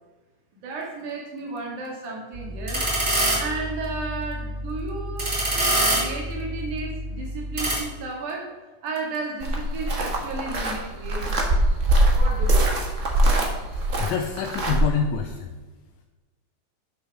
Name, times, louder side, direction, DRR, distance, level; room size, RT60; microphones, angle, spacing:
voice 1, 0.6-2.9 3.3-8.6 8.8-11.6 12.1-12.9, right 3 dB, 80° right, -1 dB, 3.5 m, -33 dB
sound 1, 2.3-7.8, right 1 dB, 25° right, 2.9 m, -26 dB
sound 2, 9.4-14.8, right 1 dB, 45° right, 0.9 m, -22 dB
voice 2, 14.0-15.5, left 7 dB, 75° left, 4 dB, 1.8 m, -26 dB
8.0 x 6.5 x 6.0 m, 1.2 s
omnidirectional pair, 3.5 m